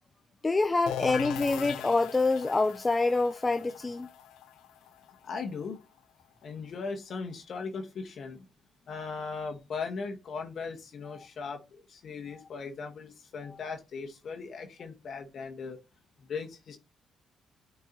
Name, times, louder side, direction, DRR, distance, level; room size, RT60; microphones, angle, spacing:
voice 1, 0.4-4.1, left 3 dB, 20° left, 0.5 m, -26 dB
sound 1, 0.9-6.4, left 11 dB, 90° left, 0.7 m, -40 dB
voice 2, 5.2-5.8 6.4-8.5 8.9-15.8 16.2-16.8, left 4 dB, 55° left, 1.4 m, -38 dB
8.9 x 4.7 x 2.9 m
cardioid pair, 90°, 0 cm